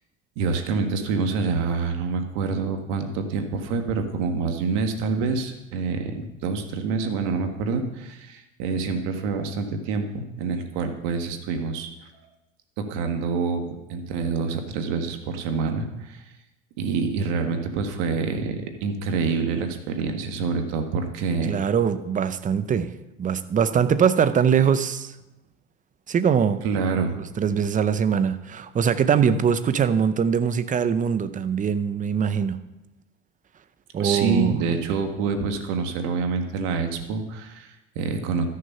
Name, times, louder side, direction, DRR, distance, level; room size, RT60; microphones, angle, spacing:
voice 1, 0.3-11.9 12.8-16.2 16.8-21.6 26.6-27.2 34.0-38.4, right 4 dB, 70° right, 6 dB, 1.7 m, -27 dB
voice 2, 21.4-22.9 23.2-25.1 26.1-26.6 27.2-32.6 33.9-34.5, right 7 dB, 20° right, 13 dB, 0.6 m, -22 dB
13.5 x 6.6 x 5.5 m, 0.97 s
supercardioid pair, 105°, 37 cm